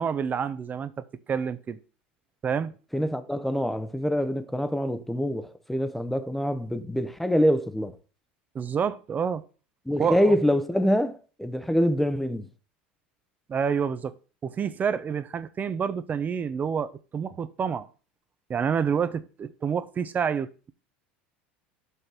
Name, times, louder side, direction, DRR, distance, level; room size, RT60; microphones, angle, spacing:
voice 1, 0.0-1.8 2.4-2.7 8.5-9.4 10.0-10.3 13.5-14.1 14.4-17.9 18.5-20.7, right 7 dB, 30° right, 0.9 m, -28 dB
voice 2, 2.9-7.9 9.9-12.5, equal, 5° left, 0.9 m, -25 dB
5.7 x 5.6 x 6.3 m
hypercardioid pair, 95°, 6 cm